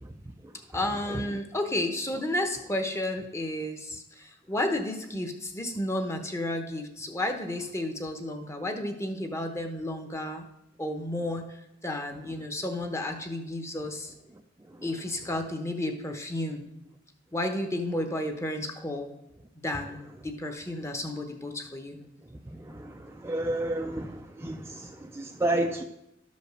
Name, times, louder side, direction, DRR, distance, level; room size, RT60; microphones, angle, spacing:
voice 1, 0.7-10.5 10.8-14.1 14.8-16.7 17.3-19.1 19.6-22.0, left 1 dB, 15° left, 0.9 m, -32 dB
voice 2, 22.5-25.8, right 1 dB, 15° right, 0.4 m, -31 dB
12.0 x 5.2 x 6.5 m
head